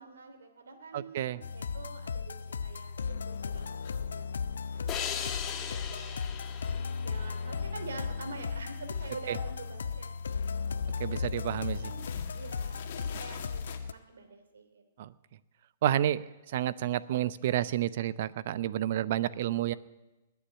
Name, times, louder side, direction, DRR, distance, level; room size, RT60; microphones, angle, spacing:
voice 1, 0.0-2.4 2.6-4.5 4.7-6.3 7.0-10.7 11.2-12.0 12.3-14.8, right 4 dB, 75° right, 6 dB, 2.8 m, -47 dB
voice 2, 0.9-1.4 11.0-11.9 15.0-15.1 15.8-16.2 16.5-19.7, right 12 dB, 55° right, 17 dB, 0.7 m, -30 dB
sound 1, 1.4-13.9, left 5 dB, 75° left, 0.6 m, -36 dB
sound 2, 2.5-2.9 3.1-4.2 4.5-6.7 7.0-7.5 7.7-13.8, left 8 dB, 55° left, 1.9 m, -51 dB
sound 3, 4.9-8.2, left 8 dB, 30° left, 1.7 m, -39 dB
20.0 x 7.2 x 9.1 m, 1.1 s
hypercardioid pair, 120°, 0 cm